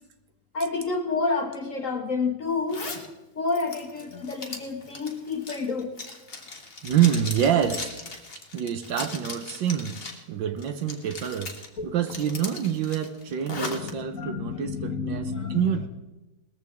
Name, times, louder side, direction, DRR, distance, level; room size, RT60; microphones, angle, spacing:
voice 1, 0.5-2.9 3.3-5.9 11.8-11.9 13.8-15.8, left 4 dB, 50° left, 4 dB, 1.2 m, -29 dB
Zipper (clothing), 2.7-3.1 3.5-10.2 10.6-11.7 12.1-13.9, left 3 dB, 30° left, 1.5 m, -38 dB
voice 2, 6.8-7.9 8.5-10.0 10.3-11.5 11.8-15.9, right 9 dB, 70° right, 9 dB, 1.4 m, -26 dB
19.0 x 14.0 x 3.6 m, 1.0 s
omnidirectional pair, 2.2 m